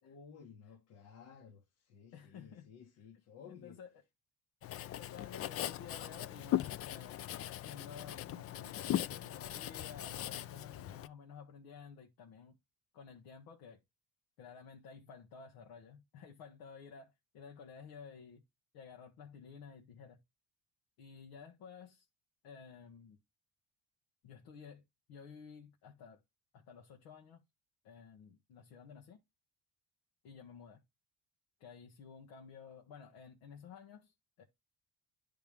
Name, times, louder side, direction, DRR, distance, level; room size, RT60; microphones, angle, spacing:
voice 1, 0.0-3.8, left 6 dB, 60° left, 1.3 m, -55 dB
voice 2, 2.1-2.7 3.5-3.9 5.0-7.2 7.6-12.6 12.9-13.8 14.4-18.4 18.7-20.2 21.0-22.1 22.4-23.2 24.2-24.8 25.1-26.2 26.5-27.4 27.8-29.2 30.2-30.8 31.6-34.4, left 6 dB, 80° left, 1.1 m, -53 dB
Writing, 4.6-11.1, left 12 dB, 40° left, 0.4 m, -39 dB
10.5 x 3.5 x 3.5 m
supercardioid pair, 85°, 35 cm